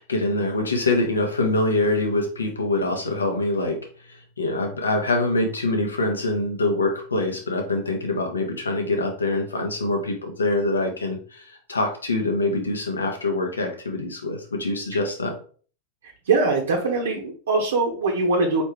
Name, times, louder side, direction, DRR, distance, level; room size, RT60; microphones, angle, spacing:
voice 1, 0.0-15.3, left 2 dB, 90° left, 3 dB, 1.0 m, -24 dB
voice 2, 16.3-18.6, right 3 dB, 75° right, -1 dB, 1.0 m, -22 dB
4.5 x 3.2 x 3.2 m, 0.42 s
hypercardioid pair, 95°, 0 cm